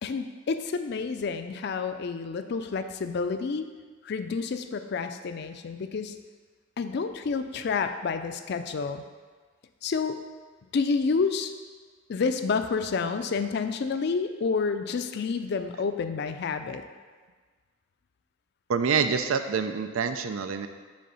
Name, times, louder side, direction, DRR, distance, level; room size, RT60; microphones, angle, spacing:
voice 1, 0.0-3.7 4.0-6.1 6.8-9.0 9.8-10.2 10.7-11.5 12.1-16.8, left 5 dB, 55° left, 8 dB, 0.4 m, -29 dB
voice 2, 18.7-20.7, right 6 dB, 90° right, 9 dB, 0.4 m, -26 dB
6.5 x 3.4 x 5.5 m, 1.4 s
head